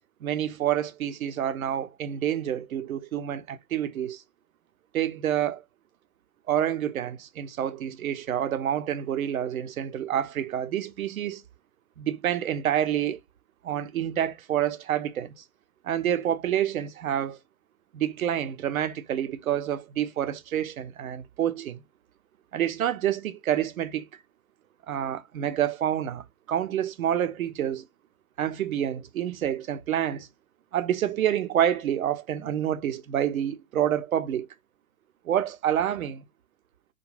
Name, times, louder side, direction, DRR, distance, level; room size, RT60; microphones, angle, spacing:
voice 1, 0.2-4.2 4.9-5.6 6.5-11.4 12.0-13.2 13.6-15.4 15.8-17.4 17.9-21.8 22.5-24.1 24.9-27.9 28.4-30.3 30.7-34.5 35.2-36.3, right 10 dB, 80° right, 0.6 m, -28 dB
2.5 x 2.2 x 3.1 m
hypercardioid pair, 120°, 42 cm